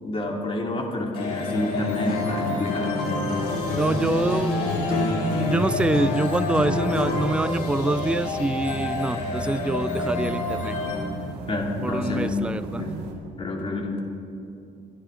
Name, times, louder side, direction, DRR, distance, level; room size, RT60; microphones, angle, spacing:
voice 1, 0.0-3.0 11.5-12.4 12.8-12.9 13.4-14.0, left 2 dB, 30° left, 1 dB, 2.4 m, -28 dB
sound 1, 1.1-11.0, left 3 dB, 85° left, 3.6 m, -30 dB
Acoustic guitar, 2.0-7.4, left 2 dB, 60° left, 2.3 m, -28 dB
sound 2, 3.2-13.1, right 2 dB, 80° right, 2.3 m, -38 dB
voice 2, 3.8-10.8 11.8-12.9, right 2 dB, 5° right, 14 dB, 0.4 m, -26 dB
26.0 x 10.0 x 3.7 m, 2.7 s
cardioid pair, 110°, 17 cm